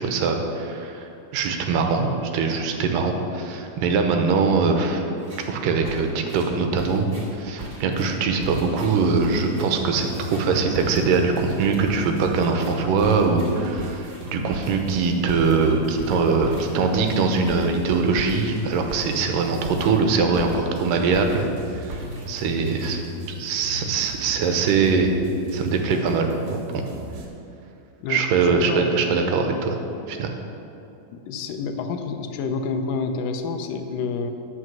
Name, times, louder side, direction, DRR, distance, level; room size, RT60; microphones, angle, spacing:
voice 1, 0.0-5.0 5.5-7.1 7.4-21.5 21.7-22.0 22.3-23.0 23.3-25.1 25.5-26.3 28.1-29.8 30.1-30.3, right 4 dB, 85° right, 4 dB, 2.5 m, -22 dB
sound 1, 5.2-5.5 5.9-20.8 21.1-21.6 21.9-23.3, right 2 dB, 30° right, 2.7 m, -40 dB
sound 2, 8.5-27.3, equal, 65° right, 2.5 m, -37 dB
voice 2, 28.0-29.2 31.1-34.3, left 4 dB, 90° left, 6 dB, 2.4 m, -28 dB
9.6 x 6.0 x 7.3 m, 2.9 s
omnidirectional pair, 3.8 m